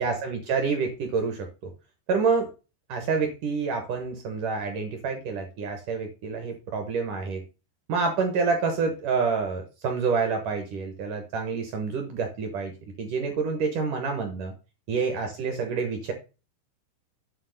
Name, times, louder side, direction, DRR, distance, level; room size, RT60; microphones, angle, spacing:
voice 1, 0.0-1.7 2.1-2.5 2.9-7.4 7.9-14.5 14.9-16.1, right 5 dB, 70° right, 4 dB, 2.0 m, -28 dB
9.5 x 3.6 x 6.4 m, 0.31 s
omnidirectional pair, 5.4 m